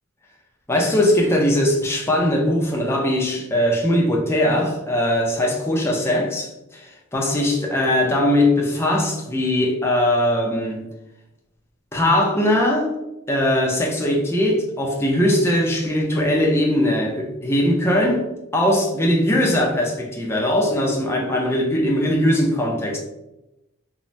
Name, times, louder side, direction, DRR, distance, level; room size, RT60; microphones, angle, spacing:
voice 1, 0.7-10.8 11.9-12.9 13.3-18.3 18.5-23.0, left 1 dB, 10° left, 0.4 m, -20 dB
3.1 x 2.0 x 2.6 m
head